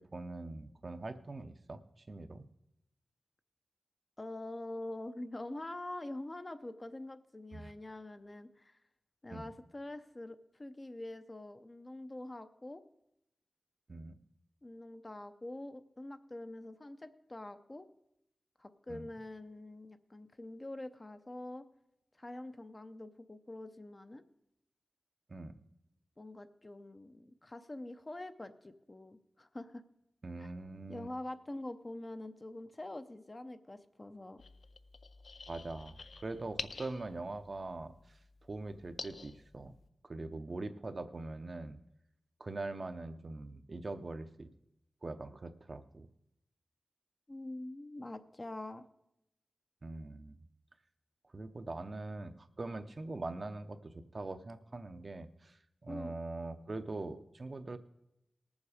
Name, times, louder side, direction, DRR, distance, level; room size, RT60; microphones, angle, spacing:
voice 1, 0.1-2.5 7.5-7.7 9.3-9.5 13.9-14.2 18.9-19.1 25.3-25.5 30.2-31.1 35.5-39.7 40.0-41.8 42.4-44.5 45.0-46.1 49.8-50.4 51.3-57.8, right 2 dB, 45° right, 9 dB, 0.7 m, -43 dB
voice 2, 4.2-8.8 9.2-12.8 14.6-17.9 18.6-21.6 22.2-24.2 26.2-29.8 30.4-30.5 30.9-34.4 47.3-48.8 55.9-56.1, left 1 dB, 30° left, 9 dB, 0.7 m, -45 dB
sound 1, 34.4-39.9, left 4 dB, 75° left, 0.5 m, -49 dB
19.0 x 7.2 x 4.9 m, 0.82 s
wide cardioid pair, 90°, 0 cm